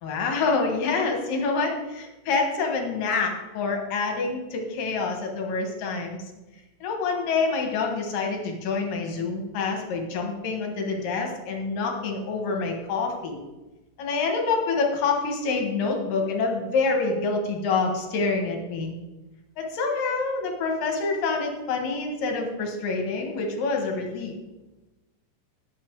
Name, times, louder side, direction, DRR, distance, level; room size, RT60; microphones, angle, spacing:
voice 1, 0.0-6.2 6.8-13.4 14.0-19.0 19.6-24.3, left 4 dB, 75° left, 2 dB, 3.1 m, -27 dB
10.5 x 8.3 x 4.7 m, 1.1 s
omnidirectional pair, 4.0 m